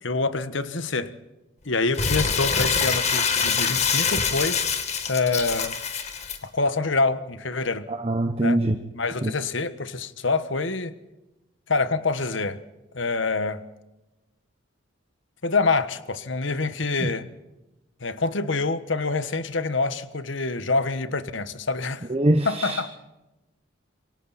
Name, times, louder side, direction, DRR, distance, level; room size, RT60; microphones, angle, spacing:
voice 1, 0.0-1.1 1.6-4.6 5.1-5.8 6.4-7.9 8.4-8.6 8.9-10.9 11.7-12.6 12.9-13.6 15.4-17.3 18.0-22.1 22.4-22.9, left 3 dB, 70° left, 1.4 m, -26 dB
Crumpling crinkling, 1.9-6.4, left 6 dB, 35° left, 2.1 m, -24 dB
voice 2, 7.9-8.8 9.2-9.3 17.0-17.1 22.1-22.8, right 1 dB, 30° right, 1.0 m, -23 dB
27.5 x 24.0 x 4.3 m
head